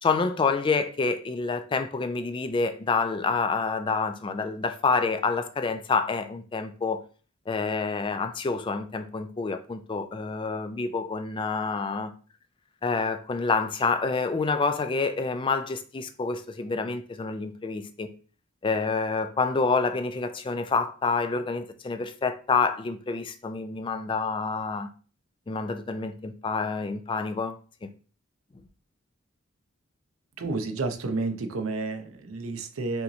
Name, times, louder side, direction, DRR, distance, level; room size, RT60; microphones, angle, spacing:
voice 1, 0.0-7.0 7.5-12.1 12.8-18.1 18.6-24.9 25.5-27.6 27.8-27.9, left 4 dB, 25° left, 0.3 m, -28 dB
voice 2, 30.4-33.0, right 3 dB, 80° right, 0.7 m, -30 dB
5.6 x 3.0 x 2.6 m
head